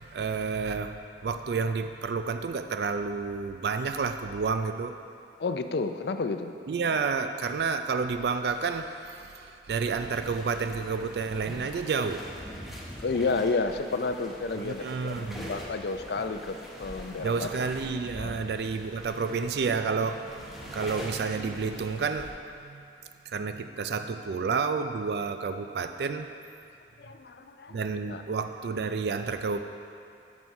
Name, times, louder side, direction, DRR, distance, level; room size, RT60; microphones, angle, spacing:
voice 1, 0.0-5.0 6.7-12.2 14.6-15.5 17.2-22.3 22.6-22.8 23.3-26.3 27.7-29.6, right 5 dB, 70° right, 8 dB, 0.4 m, -30 dB
voice 2, 5.4-6.5 13.0-17.5 18.2-18.3 27.0-27.8 28.1-28.2, left 3 dB, 70° left, 8 dB, 0.4 m, -31 dB
sound 1, 10.0-22.3, equal, ahead, 1.1 m, -43 dB
9.5 x 6.2 x 4.6 m, 2.6 s
head